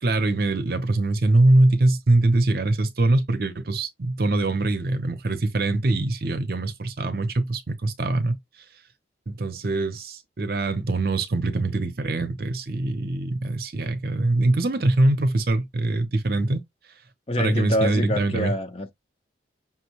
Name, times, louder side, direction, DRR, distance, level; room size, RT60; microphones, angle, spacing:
voice 1, 0.0-8.4 9.3-16.6 17.4-18.5, right 2 dB, 55° right, 0.7 m, -23 dB
voice 2, 17.3-18.9, left 1 dB, 30° left, 0.7 m, -26 dB
5.8 x 2.2 x 3.0 m
head